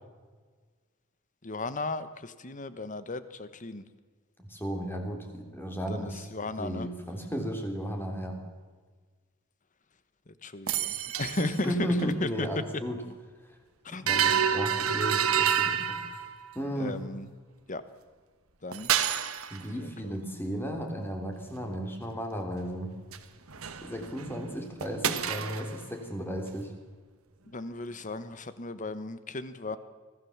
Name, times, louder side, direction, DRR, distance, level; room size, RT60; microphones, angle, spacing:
voice 1, 1.4-3.8 5.9-6.9 10.4-12.5 13.8-14.1 16.8-17.3 17.7-17.8 18.6-18.9 19.8-20.1 27.5-29.8, left 2 dB, 35° left, 13 dB, 1.2 m, -35 dB
voice 2, 4.4-6.3 6.6-8.4 11.4-13.0 13.9-16.0 16.5-17.0 19.5-22.9 23.8-26.7, equal, 10° left, 3 dB, 3.3 m, -34 dB
sound 1, 10.7-11.7 12.0-12.1 14.1-16.5 18.7-19.6 23.1-23.2 23.5-24.4 24.8-25.8, right 8 dB, 90° right, 1.4 m, -28 dB
24.5 x 16.0 x 7.3 m, 1.5 s
head